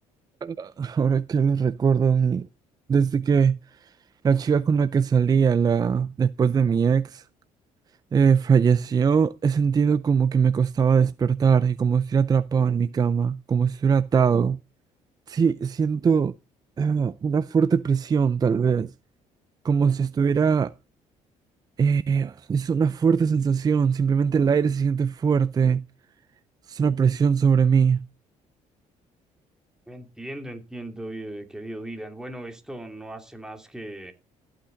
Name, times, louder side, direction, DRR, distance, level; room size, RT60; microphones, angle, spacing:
voice 1, 0.4-2.4 2.9-3.6 4.2-7.2 8.1-14.6 15.3-16.3 16.8-18.9 19.6-20.7 21.8-25.8 26.7-28.0, right 6 dB, 30° right, 0.5 m, -21 dB
voice 2, 29.9-34.1, right 1 dB, 5° right, 2.8 m, -37 dB
14.0 x 8.7 x 3.9 m
cardioid pair, 110°, 14 cm